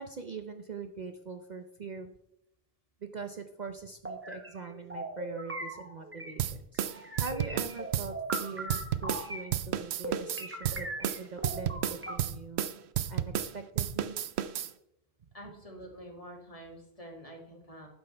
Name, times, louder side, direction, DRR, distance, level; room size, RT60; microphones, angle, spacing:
voice 1, 0.0-2.1 3.0-12.7 13.1-14.2 15.2-15.3, right 4 dB, 45° right, 7 dB, 0.8 m, -43 dB
sound 1, 4.0-6.4 6.7-9.5 10.0-12.2, right 1 dB, 10° right, 1.3 m, -40 dB
sound 2, 6.4-9.3 9.5-13.5 13.8-14.7, right 10 dB, 80° right, 0.9 m, -32 dB
voice 2, 15.3-17.9, right 1 dB, 35° left, 0 dB, 2.4 m, -47 dB
12.5 x 10.0 x 3.3 m, 0.81 s
omnidirectional pair, 1.1 m